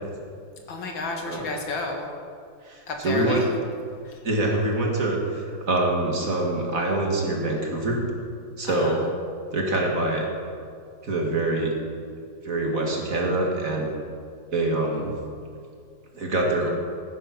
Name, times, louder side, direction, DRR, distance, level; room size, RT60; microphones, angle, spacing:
voice 1, 0.7-2.0 2.9-3.4 8.7-8.9, left 3 dB, 80° left, 2 dB, 2.5 m, -31 dB
voice 2, 2.6-3.4 4.2-8.0 8.6-9.0 9.5-10.3 11.0-11.7 12.4-13.9 14.5-15.1 16.1-16.7, right 2 dB, 45° right, 0 dB, 2.2 m, -25 dB
15.5 x 9.7 x 6.0 m, 2.3 s
omnidirectional pair, 2.1 m